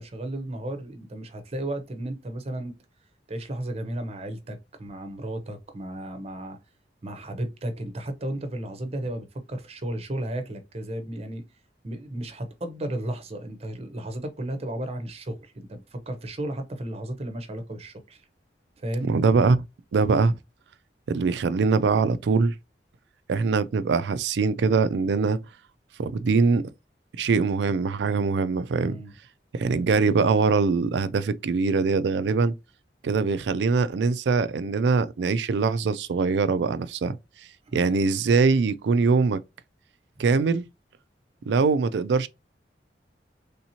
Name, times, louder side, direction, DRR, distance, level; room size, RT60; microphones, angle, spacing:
voice 1, 0.0-2.7 3.3-6.6 7.0-11.4 11.8-18.3 18.8-19.1 28.8-29.1 37.7-37.9, right 1 dB, 35° right, 0.7 m, -34 dB
voice 2, 19.1-19.6 19.9-20.3 21.1-22.5 23.3-25.4 26.0-26.7 27.2-28.9 29.5-32.5 33.0-37.1 37.7-39.4 40.2-40.6 41.5-42.3, right 4 dB, 75° right, 0.4 m, -22 dB
3.4 x 2.8 x 2.7 m
head